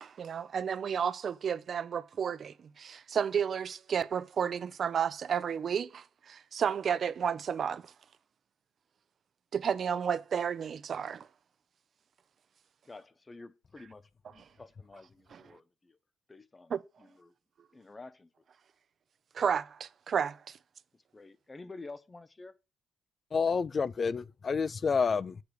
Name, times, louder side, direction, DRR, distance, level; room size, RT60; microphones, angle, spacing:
voice 1, 0.0-7.9 9.5-11.3 15.3-15.4 16.7-16.8 19.3-20.6, right 7 dB, 55° right, 0.4 m, -32 dB
voice 2, 12.8-16.0 16.3-17.3 17.7-18.3 21.1-22.5 23.5-23.6, left 3 dB, 25° left, 0.8 m, -50 dB
voice 3, 23.3-25.4, left 5 dB, 40° left, 0.3 m, -29 dB
8.1 x 3.4 x 6.4 m
cardioid pair, 90°, 0 cm